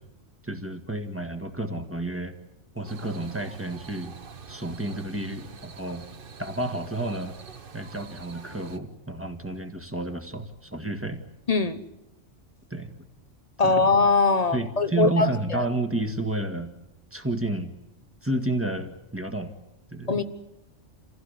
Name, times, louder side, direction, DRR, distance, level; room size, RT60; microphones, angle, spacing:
voice 1, 0.4-2.3 2.8-4.1 4.5-6.0 6.4-7.3 7.7-11.2 12.7-12.9 13.6-13.9 14.5-16.7 17.1-17.7 18.2-19.5 19.9-20.2, right 2 dB, 10° right, 7 dB, 1.7 m, -31 dB
sound 1, 2.8-8.8, right 5 dB, 50° right, 1.2 m, -45 dB
voice 2, 11.5-11.8 13.6-15.3 20.1-20.2, left 3 dB, 35° left, 10 dB, 1.1 m, -21 dB
28.0 x 16.0 x 9.7 m, 0.90 s
omnidirectional pair, 1.2 m